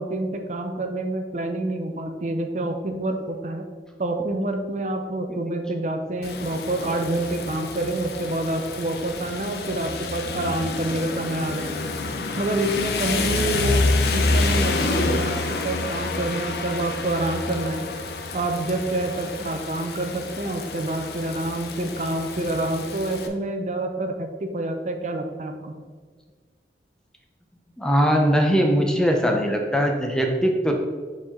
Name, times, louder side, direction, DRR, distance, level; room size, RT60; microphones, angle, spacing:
voice 1, 0.0-3.6 4.0-11.9 12.4-13.8 14.1-17.8 18.3-25.7, right 1 dB, 40° right, 5 dB, 0.5 m, -27 dB
Rain, 6.2-23.3, left 3 dB, 65° left, 0.7 m, -28 dB
voice 2, 27.8-30.7, equal, 5° left, 2 dB, 0.6 m, -20 dB
6.9 x 4.5 x 3.7 m, 1.5 s
head